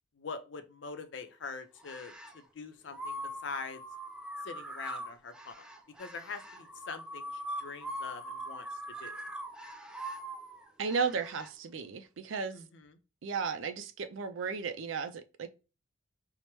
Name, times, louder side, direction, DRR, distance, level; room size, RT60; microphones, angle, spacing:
voice 1, 0.2-3.8 4.4-5.7 6.0-9.2 12.5-13.0, left 4 dB, 65° left, 0.5 m, -44 dB
sound 1, 1.8-2.4 2.9-11.5, equal, 5° right, 0.3 m, -42 dB
voice 2, 10.8-12.6 13.2-15.5, right 5 dB, 80° right, 0.4 m, -34 dB
4.6 x 2.1 x 2.9 m
head